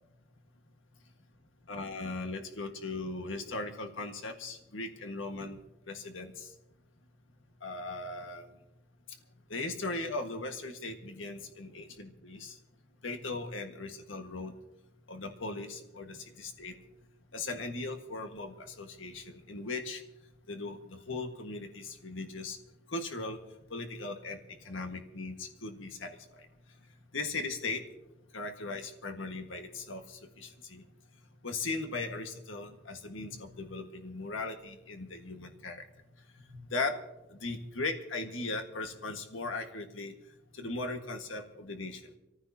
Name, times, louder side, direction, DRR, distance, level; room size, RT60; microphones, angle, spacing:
voice 1, 1.7-5.6 5.9-6.5 7.6-8.5 9.5-12.6 13.0-14.5 15.1-16.7 17.3-20.0 20.5-22.6 22.9-23.4 23.7-24.4 24.6-26.5 27.1-27.8 28.3-30.8 31.4-35.8 36.5-37.0 37.3-40.1 40.5-42.0, left 3 dB, 80° left, 4 dB, 1.7 m, -38 dB
26.0 x 14.5 x 2.9 m, 0.90 s
head